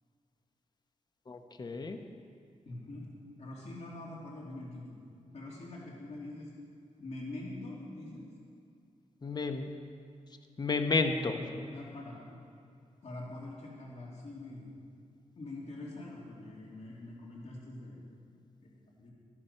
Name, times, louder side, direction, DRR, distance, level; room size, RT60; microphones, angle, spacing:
voice 1, 1.3-2.0 9.2-9.7 10.6-11.4, left 3 dB, 35° left, 6 dB, 0.9 m, -31 dB
voice 2, 2.6-3.1 3.4-5.0 5.3-6.5 7.0-8.2 11.1-12.3 13.0-14.7 15.4-18.0 18.6-19.1, left 2 dB, 55° left, -4 dB, 2.6 m, -44 dB
12.5 x 12.0 x 5.5 m, 2.4 s
wide cardioid pair, 125°, 13 cm